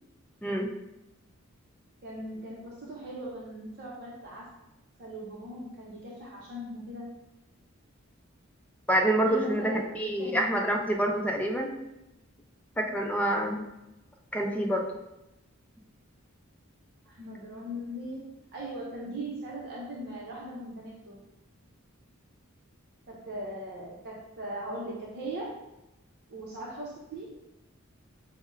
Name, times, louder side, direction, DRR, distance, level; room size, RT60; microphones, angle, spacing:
voice 1, 0.4-0.7 8.9-11.7 12.8-13.7 14.3-14.8, right 1 dB, 5° left, 1 dB, 0.5 m, -27 dB
voice 2, 2.0-4.5 5.0-7.1 9.2-9.9 10.2-10.6 17.1-18.2 18.5-21.2 23.1-25.5 26.3-27.3, right 1 dB, 50° right, -4 dB, 0.7 m, -39 dB
5.0 x 2.1 x 3.7 m, 0.95 s
head